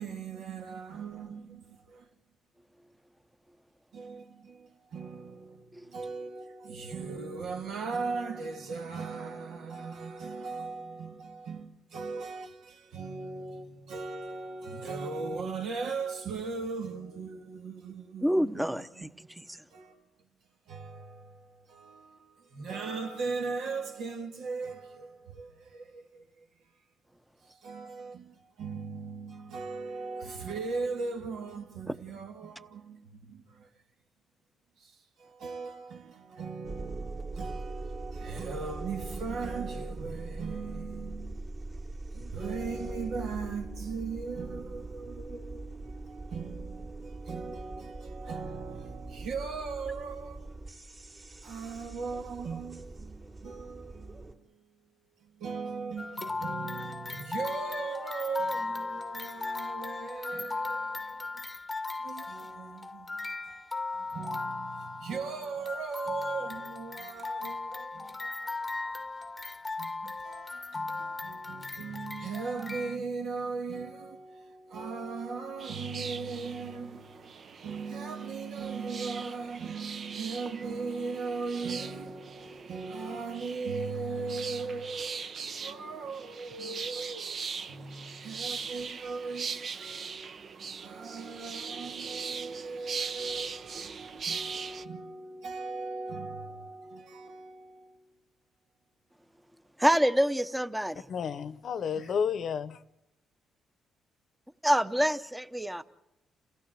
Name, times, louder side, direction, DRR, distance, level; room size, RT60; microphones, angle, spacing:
voice 1, 0.0-2.1 3.9-19.3 19.7-20.1 20.7-26.5 27.4-33.7 34.8-41.5 42.1-50.5 51.4-54.6 55.2-61.4 62.0-68.6 68.8-68.9 69.8-77.3 77.6-87.4 87.7-90.5 90.8-98.1, right 4 dB, 75° right, 1.9 m, -39 dB
voice 2, 18.2-19.1 19.4-19.6 99.8-101.0 104.6-105.8, equal, 5° right, 0.9 m, -26 dB
sound 1, 36.6-54.3, right 2 dB, 35° right, 2.7 m, -42 dB
sound 2, 56.0-73.0, left 3 dB, 20° left, 0.9 m, -37 dB
sound 3, 75.6-94.8, right 5 dB, 55° right, 0.8 m, -40 dB
voice 3, 101.1-102.8, left 7 dB, 60° left, 0.8 m, -31 dB
28.5 x 15.5 x 7.7 m
cardioid pair, 90°, 0 cm